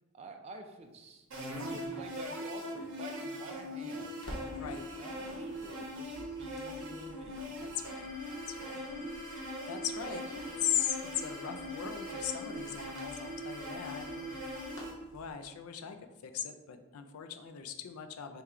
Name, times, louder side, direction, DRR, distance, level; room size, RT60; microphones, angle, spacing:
voice 1, 0.1-1.3 1.7-4.2 5.0-7.6 8.5-9.1 10.0-10.2 10.5-10.6, right 3 dB, 30° right, 4 dB, 0.3 m, -50 dB
sound 1, 1.3-14.9, equal, 60° right, 0.8 m, -41 dB
Crackle, 1.5-3.6 4.0-15.3, equal, 55° left, 0.9 m, -53 dB
voice 2, 7.6-8.1 8.5-8.8 9.3-9.4 9.7-10.2 10.6-14.4 15.1-16.0 16.2-18.4, left 9 dB, 80° left, 8 dB, 0.4 m, -38 dB
sound 2, 7.8-14.7, left 2 dB, 5° right, 0.7 m, -49 dB
3.6 x 2.3 x 4.2 m, 1.1 s
head